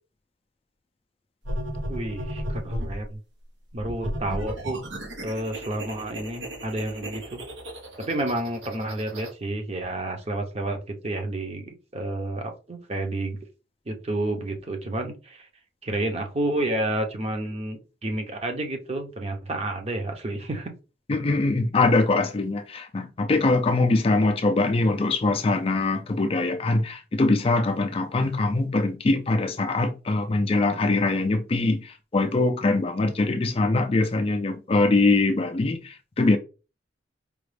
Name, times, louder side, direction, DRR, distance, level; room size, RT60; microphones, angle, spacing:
sound 1, 1.4-3.0 3.8-9.3, equal, 90° right, 1.3 m, -34 dB
voice 1, 1.9-3.2 3.7-4.8 5.2-7.4 8.0-13.4 13.9-15.5 15.8-20.7, right 1 dB, 35° right, 0.8 m, -30 dB
voice 2, 21.1-36.4, left 2 dB, 30° left, 0.4 m, -23 dB
4.9 x 2.4 x 3.3 m
head